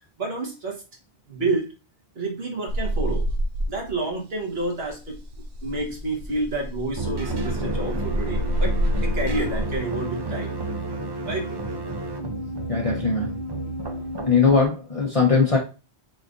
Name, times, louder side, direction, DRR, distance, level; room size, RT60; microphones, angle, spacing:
voice 1, 0.2-0.8 1.3-1.7 2.1-3.3 3.7-5.2 5.6-8.7 9.0-10.5 11.3-11.6, right 2 dB, 70° right, 0 dB, 1.6 m, -29 dB
sound 1, 2.7-4.1 4.4-9.8 11.5-12.0, equal, 90° right, 1.0 m, -27 dB
sound 2, 7.0-14.7, right 2 dB, 35° right, 0.4 m, -31 dB
voice 2, 12.7-13.4 14.3-15.6, left 5 dB, 35° left, -2 dB, 0.8 m, -20 dB
4.9 x 4.0 x 2.5 m, 0.31 s
omnidirectional pair, 1.1 m